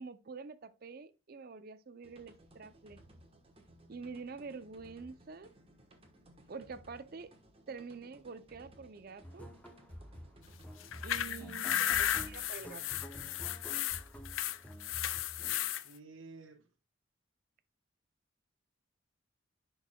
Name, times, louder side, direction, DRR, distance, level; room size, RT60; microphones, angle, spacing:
voice 1, 0.0-3.0 3.9-5.5 6.5-7.3 7.7-9.5 11.0-12.9, right 4 dB, 50° right, 0.5 m, -47 dB
sound 1, 2.0-11.3, right 1 dB, 30° right, 1.2 m, -60 dB
sound 2, 9.2-15.6, equal, 5° left, 0.7 m, -49 dB
sound 3, 10.8-15.8, left 11 dB, 80° left, 0.5 m, -34 dB
voice 2, 15.4-16.7, right 3 dB, 75° right, 1.0 m, -53 dB
10.5 x 4.6 x 2.2 m
head